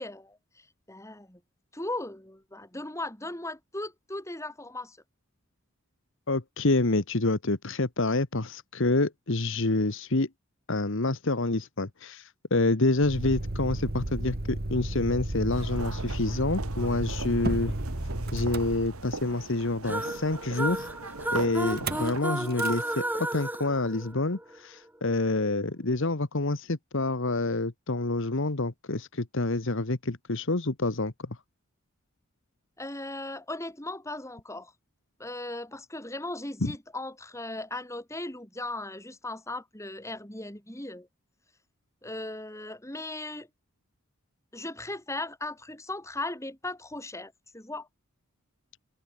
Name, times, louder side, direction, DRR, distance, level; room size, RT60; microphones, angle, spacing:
voice 1, 0.0-1.4 1.7-5.0 32.8-34.7 35.2-41.1 42.0-43.5 44.5-47.9, left 2 dB, 15° left, 4.1 m, -37 dB
voice 2, 6.3-10.3 10.7-17.7 18.3-20.9 21.3-31.4 36.6-36.7, left 2 dB, 60° left, 1.4 m, -28 dB
Motor vehicle (road), 13.0-19.4 21.7-22.1 22.4-22.8, right 1 dB, 45° right, 1.6 m, -33 dB
sound 1, 15.5-22.2, right 3 dB, 80° right, 3.0 m, -40 dB
sound 2, 19.8-24.6, right 1 dB, 10° right, 3.9 m, -33 dB
head